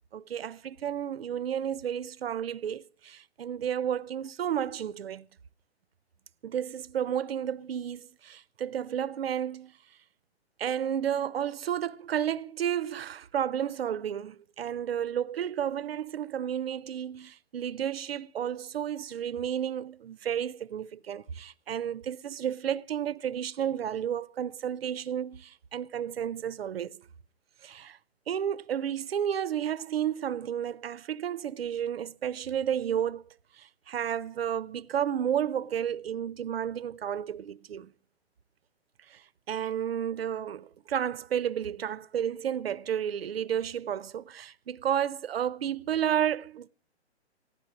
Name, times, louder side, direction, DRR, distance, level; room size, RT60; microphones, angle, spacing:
voice 1, 0.1-5.3 6.4-9.7 10.6-27.0 27.6-28.0 28.3-33.2 33.6-37.9 39.1-39.2 39.5-46.7, right 9 dB, 60° right, 0.7 m, -32 dB
15.5 x 11.5 x 6.1 m
figure-of-eight pair, 130°, 33 cm